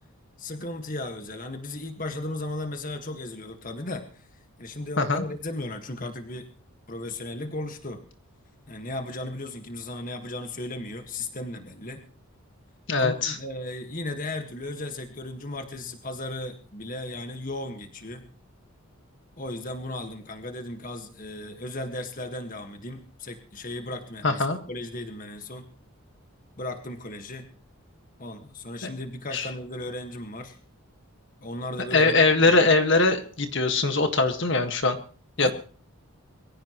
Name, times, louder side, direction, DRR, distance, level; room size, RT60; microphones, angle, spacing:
voice 1, 0.4-6.4 6.9-8.0 8.7-12.0 13.0-18.3 19.4-25.7 26.6-27.5 28.2-30.6 31.4-32.6 35.4-35.5, left 2 dB, 35° left, 6 dB, 1.7 m, -36 dB
voice 2, 12.9-13.4 24.2-24.6 28.8-28.9 29.3-29.5 31.9-35.0 35.4-35.5, left 3 dB, 55° left, 7 dB, 1.7 m, -21 dB
23.0 x 16.0 x 3.1 m, 0.41 s
head